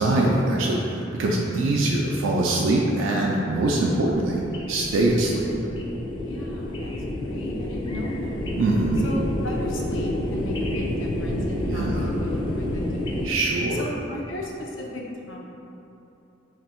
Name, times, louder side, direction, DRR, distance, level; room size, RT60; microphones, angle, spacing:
voice 1, 0.0-4.4 4.7-5.5 8.6-9.1 11.7-12.1 13.2-13.8, right 2 dB, 85° right, -2 dB, 0.3 m, -23 dB
voice 2, 2.5-3.2 6.2-6.9 7.2-8.4 9.0-12.8 13.1-13.3 13.8-15.4, left 1 dB, 85° left, -1 dB, 0.6 m, -35 dB
sound 1, 3.5-13.3, left 1 dB, 25° left, 0.3 m, -29 dB
3.4 x 2.5 x 4.3 m, 2.9 s
head